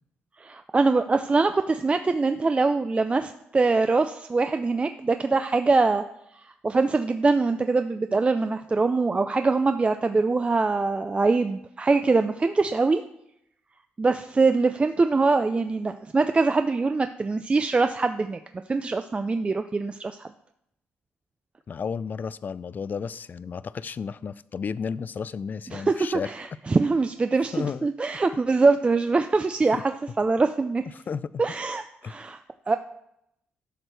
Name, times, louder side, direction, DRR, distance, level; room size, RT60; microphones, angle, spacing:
voice 1, 0.4-6.0 6.4-13.0 14.0-18.4 18.7-20.3 25.7-29.9 30.2-30.8 31.4-32.4 32.7-32.8, right 3 dB, 25° right, 8 dB, 0.4 m, -23 dB
voice 2, 21.7-26.3 27.5-27.9 29.7-29.8 31.1-31.3 32.0-32.1, left 6 dB, 45° left, 18 dB, 0.4 m, -32 dB
11.5 x 6.1 x 3.3 m, 0.79 s
cardioid pair, 75°, 4 cm